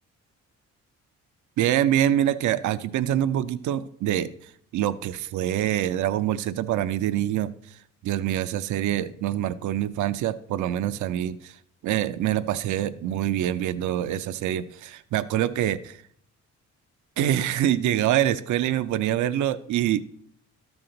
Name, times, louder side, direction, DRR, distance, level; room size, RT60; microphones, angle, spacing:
voice 1, 1.6-4.3 4.7-7.5 8.0-11.5 11.8-16.0 17.2-20.0, right 11 dB, 75° right, 14 dB, 0.5 m, -25 dB
12.5 x 6.1 x 3.8 m, 0.67 s
cardioid pair, 90°, 30 cm